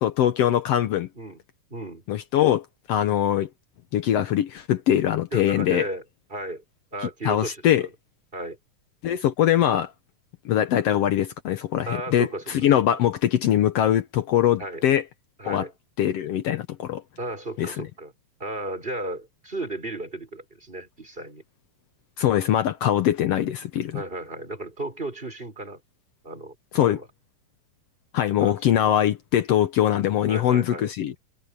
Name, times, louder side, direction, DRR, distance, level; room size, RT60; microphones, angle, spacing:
voice 1, 0.0-1.1 2.1-3.5 3.9-5.9 7.2-7.9 9.0-9.9 10.4-15.0 15.4-15.7 16.0-17.0 17.6-17.9 22.2-24.0 26.7-27.0 28.1-31.1, left 11 dB, 70° left, 1.5 m, -22 dB
voice 2, 1.7-2.0 5.3-6.0 6.3-6.6 6.9-7.9 8.3-8.6 11.9-12.4 14.6-14.8 15.4-15.7 17.2-18.1 18.4-21.4 23.9-25.8 26.2-27.0 28.4-28.6 28.8-28.9 30.3-30.9, right 2 dB, 15° right, 5.0 m, -34 dB
omnidirectional pair, 3.7 m